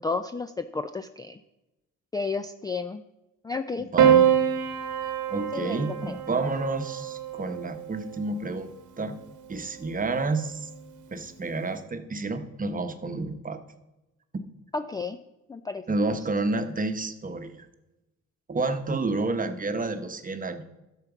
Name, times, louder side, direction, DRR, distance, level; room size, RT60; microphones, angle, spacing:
voice 1, 0.0-1.4 2.1-3.0 3.4-3.9 5.5-6.2 14.7-15.2 15.5-15.8, left 4 dB, 15° left, 9 dB, 0.3 m, -32 dB
voice 2, 3.8-4.3 5.0-8.7 9.0-9.2 9.5-10.7 11.1-13.6 15.9-17.7 18.5-20.6, right 3 dB, 25° right, 8 dB, 0.9 m, -30 dB
Piano, 4.0-8.4 9.6-10.3, right 9 dB, 80° right, 1.1 m, -25 dB
12.0 x 4.5 x 7.0 m, 0.98 s
cardioid pair, 90°, 30 cm